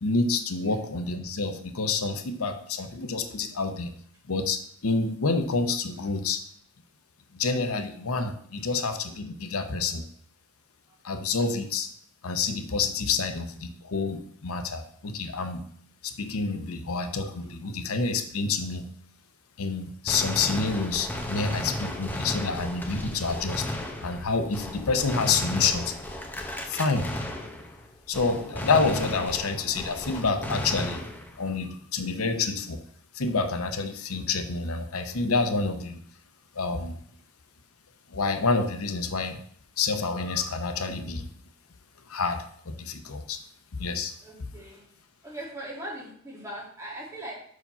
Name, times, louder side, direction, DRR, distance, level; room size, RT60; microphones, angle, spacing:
voice 1, 0.0-3.9 4.3-6.4 7.3-10.0 11.0-11.9 12.2-15.6 16.0-18.8 19.6-23.6 24.0-25.9 26.6-27.1 28.1-31.1 31.4-32.8 33.1-36.0 36.5-37.0 38.1-39.4 39.8-41.3 42.1-43.4 43.8-44.1, left 4 dB, 85° left, 8 dB, 0.8 m, -28 dB
Gunshot gunfire, 20.1-27.9 28.1-31.5, left 1 dB, 10° left, 0.8 m, -34 dB
voice 2, 44.2-44.9 45.2-47.3, right 1 dB, 15° right, -4 dB, 2.6 m, -40 dB
5.5 x 5.0 x 5.6 m, 0.63 s
head